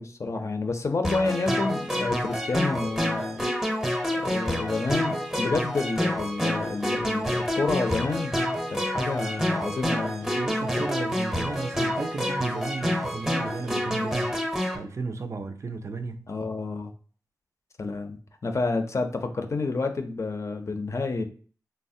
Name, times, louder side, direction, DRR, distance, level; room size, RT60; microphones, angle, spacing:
voice 1, 0.0-3.5 4.1-8.4 8.7-10.3 10.7-10.8 16.3-16.9 17.8-18.2 18.4-21.2, left 3 dB, 45° left, 0.4 m, -29 dB
sound 1, 1.0-14.8, equal, 5° right, 0.6 m, -28 dB
voice 2, 10.4-14.4 14.7-16.3, right 4 dB, 45° right, 0.3 m, -34 dB
3.3 x 2.0 x 2.6 m
cardioid pair, 65°, 7 cm